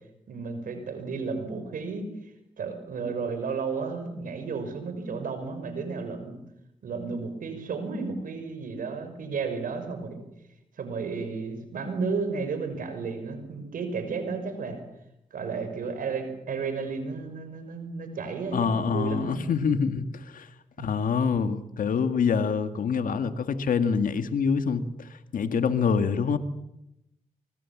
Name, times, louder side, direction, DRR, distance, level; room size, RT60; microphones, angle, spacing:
voice 1, 0.3-6.4 6.8-10.2 10.8-14.8 15.3-19.4 20.8-20.9, right 4 dB, 85° right, 8 dB, 5.9 m, -33 dB
voice 2, 18.5-20.5 20.8-26.4, left 6 dB, 80° left, 10 dB, 2.0 m, -26 dB
25.0 x 24.5 x 7.4 m, 0.83 s
cardioid pair, 60°, 14 cm